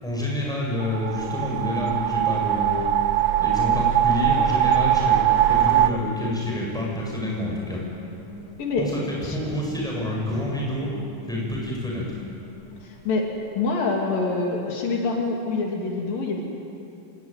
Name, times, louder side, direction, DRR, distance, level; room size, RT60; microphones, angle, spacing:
voice 1, 0.0-2.9 3.4-5.2 5.5-7.8 8.8-10.9 11.3-12.1, left 1 dB, ahead, -3 dB, 7.7 m, -28 dB
sound 1, 0.8-5.9, right 11 dB, 80° right, 2.4 m, -21 dB
sound 2, 6.1-13.9, left 4 dB, 65° left, 3.9 m, -45 dB
voice 2, 12.8-13.3 13.6-16.4, left 3 dB, 85° left, -1 dB, 4.8 m, -25 dB
26.5 x 20.5 x 9.4 m, 2.7 s
omnidirectional pair, 3.9 m